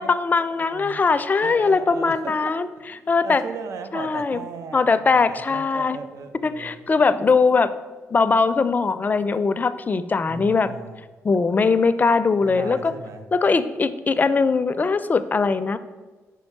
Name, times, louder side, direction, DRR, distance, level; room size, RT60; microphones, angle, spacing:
voice 1, 0.0-2.7 3.1-3.4 3.9-4.4 4.7-6.0 6.4-7.7 8.1-10.7 11.2-12.9 13.3-15.8, left 4 dB, 35° left, 12 dB, 0.4 m, -20 dB
voice 2, 0.6-1.0 1.4-2.6 3.0-6.8 10.3-11.0 12.4-13.2, right 5 dB, 70° right, 8 dB, 0.6 m, -37 dB
5.3 x 4.7 x 5.8 m, 1.3 s
cardioid pair, 75°, 5 cm